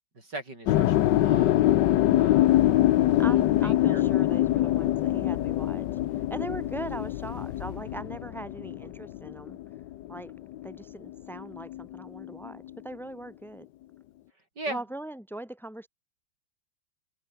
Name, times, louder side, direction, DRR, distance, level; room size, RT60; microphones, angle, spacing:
voice 1, 0.1-1.7 2.1-2.6 3.2-4.0 14.6-14.8, right 2 dB, 70° right, 8.1 m, -39 dB
sound 1, 0.7-10.8 11.0-12.7, left 14 dB, 85° left, 1.4 m, -24 dB
voice 2, 3.1-5.9 6.3-9.6 10.1-10.3 10.6-13.7 14.7-15.9, right 1 dB, ahead, 3.3 m, -40 dB
omnidirectional pair, 1.9 m